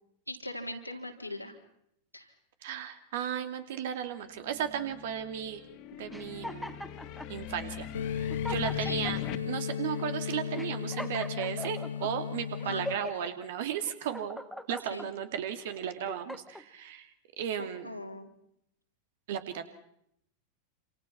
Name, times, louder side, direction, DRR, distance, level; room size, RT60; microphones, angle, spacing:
voice 1, 0.3-1.5 2.1-2.3 8.8-9.0 12.6-12.8 14.9-15.1 17.6-18.3, left 1 dB, 90° left, 2 dB, 3.6 m, -40 dB
voice 2, 2.6-5.6 6.0-6.8 7.3-7.9 8.2-9.2 9.5-14.4 14.7-17.1 17.4-17.9 19.3-19.7, right 9 dB, 55° right, 9 dB, 2.6 m, -35 dB
sound 1, 4.4-9.4, left 8 dB, 40° left, 2.5 m, -41 dB
sound 2, 6.1-7.3 7.9-8.0 8.3-9.4 9.9-10.1 10.6-12.1 12.6-13.3 13.8-15.1 15.6-16.6, left 1 dB, ahead, 1.6 m, -41 dB
sound 3, 7.9-12.9, left 8 dB, 70° left, 1.1 m, -35 dB
28.0 x 27.5 x 5.9 m, 0.76 s
figure-of-eight pair, 90°, 0 cm